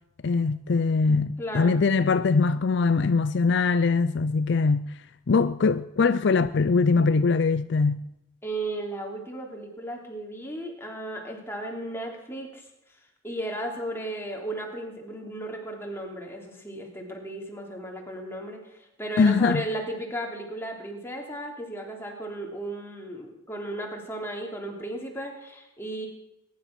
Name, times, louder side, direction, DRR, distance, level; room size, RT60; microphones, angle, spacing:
voice 1, 0.2-5.0 5.3-8.0 19.2-19.6, left 4 dB, 60° left, 0.5 m, -22 dB
voice 2, 1.4-1.8 8.4-12.6 13.2-26.1, right 1 dB, 10° left, 3.0 m, -35 dB
21.0 x 11.0 x 6.0 m
head